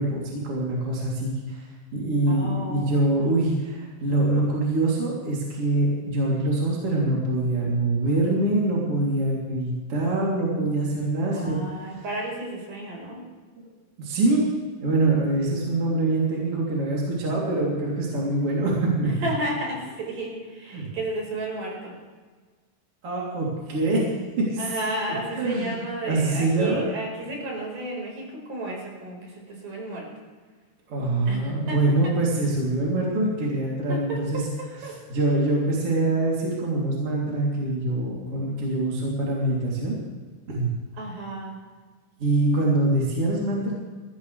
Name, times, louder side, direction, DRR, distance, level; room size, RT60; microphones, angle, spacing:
voice 1, 0.0-1.6 1.9-11.6 11.9-12.0 13.6-13.7 14.0-14.4 14.8-19.1 20.7-20.9 23.0-24.1 24.4-24.7 25.1-25.7 26.1-26.9 30.9-34.4 34.9-40.0 40.5-40.7 42.2-43.7, right 2 dB, 35° right, -5 dB, 3.8 m, -24 dB
voice 2, 2.3-3.2 11.3-13.2 19.2-21.9 24.6-30.1 31.3-31.8 33.9-35.0 41.0-41.6, right 1 dB, 55° right, -1 dB, 6.3 m, -33 dB
22.0 x 16.0 x 3.4 m, 1.5 s
omnidirectional pair, 4.7 m